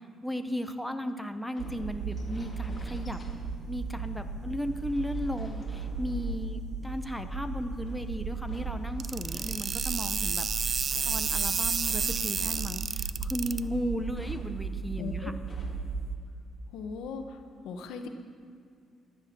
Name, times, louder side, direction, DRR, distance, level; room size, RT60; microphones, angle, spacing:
voice 1, 0.2-3.2 3.7-10.4 11.1-15.3, equal, ahead, 7 dB, 0.9 m, -35 dB
sound 1, 1.5-3.8 4.3-6.8 7.8-12.9 13.2-16.1 16.3-16.4 16.9-17.3, left 2 dB, 30° left, 2.5 m, -53 dB
sound 2, 1.6-16.1, right 4 dB, 85° right, 1.0 m, -36 dB
sound 3, 9.0-13.6, right 5 dB, 45° right, 0.4 m, -30 dB
voice 2, 15.0-15.3 16.7-17.4 17.6-18.1, left 5 dB, 90° left, 6 dB, 1.1 m, -38 dB
14.0 x 10.0 x 6.1 m, 2.2 s
cardioid pair, 90°, 0 cm